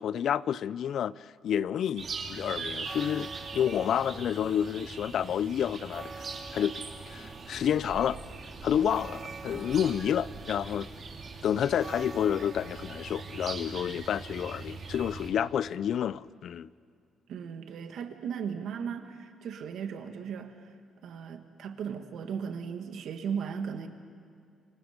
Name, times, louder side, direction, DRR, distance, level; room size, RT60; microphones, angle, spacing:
voice 1, 0.0-6.8 7.1-8.2 8.6-10.9 11.4-16.7, left 9 dB, 65° left, 0.5 m, -29 dB
sound 1, 2.0-15.3, right 4 dB, 50° right, 3.2 m, -42 dB
sound 2, 2.6-16.2, right 4 dB, 30° right, 0.9 m, -48 dB
voice 2, 17.3-20.7 21.0-23.9, right 7 dB, 75° right, 1.8 m, -36 dB
29.5 x 24.5 x 5.2 m
cardioid pair, 90°, 0 cm